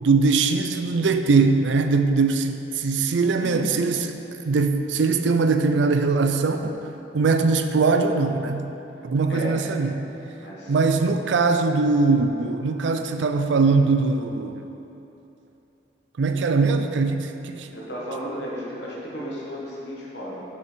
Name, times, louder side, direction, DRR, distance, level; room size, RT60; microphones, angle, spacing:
voice 1, 0.0-4.2 4.4-6.8 7.1-8.7 9.0-10.0 10.7-14.7 16.2-17.7, right 4 dB, 80° right, 7 dB, 0.4 m, -21 dB
voice 2, 3.4-3.7 9.3-9.6 10.4-10.7 17.7-20.4, equal, 70° left, -5 dB, 1.4 m, -34 dB
6.0 x 5.9 x 4.5 m, 2.9 s
head